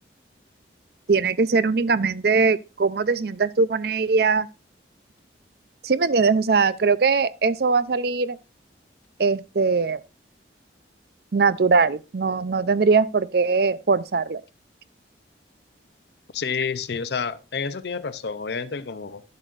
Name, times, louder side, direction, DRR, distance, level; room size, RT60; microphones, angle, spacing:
voice 1, 1.1-4.5 5.8-8.4 9.2-10.0 11.3-14.4, right 4 dB, 55° right, 0.5 m, -21 dB
voice 2, 16.3-19.2, left 5 dB, 65° left, 0.6 m, -29 dB
11.5 x 7.5 x 2.5 m
head